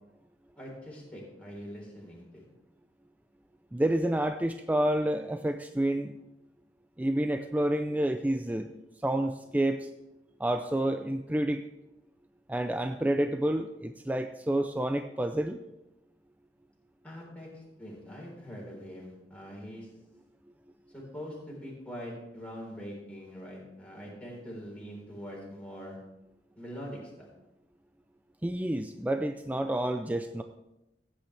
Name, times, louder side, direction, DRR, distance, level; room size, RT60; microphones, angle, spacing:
voice 1, 0.6-2.4 17.0-19.9 20.9-26.0 26.6-27.3, equal, 10° left, -3 dB, 3.9 m, -43 dB
voice 2, 3.7-6.1 7.0-8.7 9.0-9.9 10.4-11.6 12.5-15.6 28.4-30.4, right 1 dB, 10° right, 7 dB, 0.4 m, -29 dB
15.5 x 9.1 x 3.3 m, 0.93 s
head